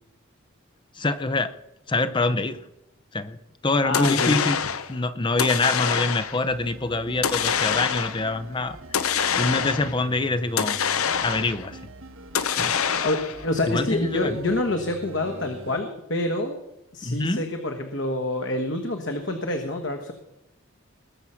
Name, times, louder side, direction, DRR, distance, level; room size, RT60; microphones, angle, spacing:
voice 1, 0.9-1.5 1.9-2.6 3.1-3.4 3.6-4.6 4.9-10.8 11.2-11.8 12.6-12.8 13.7-14.3 17.0-17.4, left 2 dB, 20° left, 12 dB, 0.5 m, -25 dB
voice 2, 3.8-4.4 13.0-16.6 16.9-20.1, left 2 dB, 60° left, 4 dB, 1.3 m, -27 dB
sound 1, 3.9-4.9 5.4-6.4 7.2-8.3 8.9-10.0 10.6-11.7 12.3-13.4, left 7 dB, 90° left, 0.9 m, -25 dB
sound 2, 6.5-15.8, right 1 dB, 75° right, 1.3 m, -44 dB
20.0 x 7.3 x 5.7 m, 0.94 s
head